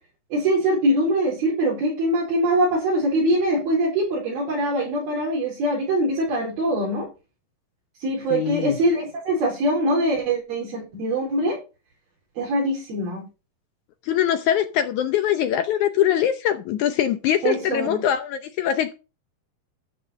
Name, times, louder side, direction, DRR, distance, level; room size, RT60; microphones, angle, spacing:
voice 1, 0.3-7.1 8.0-11.6 12.4-13.3 17.4-18.1, right 1 dB, 85° right, 6.1 m, -23 dB
voice 2, 8.3-8.8 14.0-18.9, left 10 dB, 75° left, 1.9 m, -22 dB
12.5 x 5.1 x 6.4 m
omnidirectional pair, 4.2 m